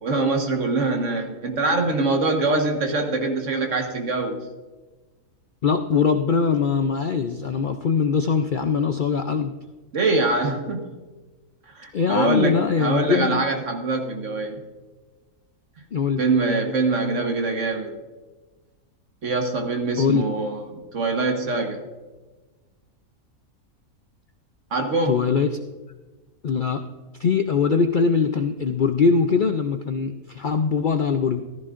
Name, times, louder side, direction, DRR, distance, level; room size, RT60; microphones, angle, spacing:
voice 1, 0.0-4.5 9.9-10.9 11.7-14.6 16.2-18.0 19.2-21.8 24.7-25.3, right 3 dB, 55° right, 4 dB, 1.7 m, -24 dB
voice 2, 5.6-9.5 11.9-13.4 15.9-16.2 20.0-20.2 25.1-25.6 26.4-26.8 27.2-31.4, left 5 dB, 90° left, 7 dB, 0.4 m, -22 dB
15.0 x 13.5 x 2.5 m, 1.2 s
omnidirectional pair, 1.6 m